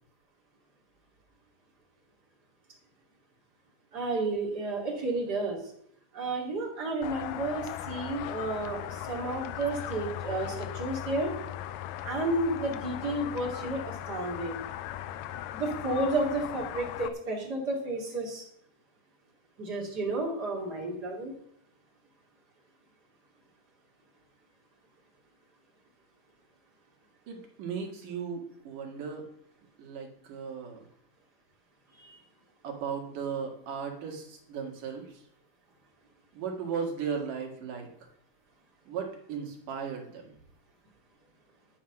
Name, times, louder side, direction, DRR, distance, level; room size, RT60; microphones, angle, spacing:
voice 1, 3.9-5.6 6.1-11.3 12.0-14.6 15.5-18.4 19.6-21.3 31.9-32.2, right 2 dB, 30° right, -2 dB, 2.7 m, -32 dB
sound 1, 7.0-17.1, left 12 dB, 85° left, 1.9 m, -38 dB
voice 2, 27.3-29.3 29.8-30.8 32.6-35.2 36.3-37.9 38.9-40.3, right 6 dB, 60° right, 1 dB, 3.3 m, -36 dB
10.5 x 9.4 x 5.9 m, 0.70 s
omnidirectional pair, 4.4 m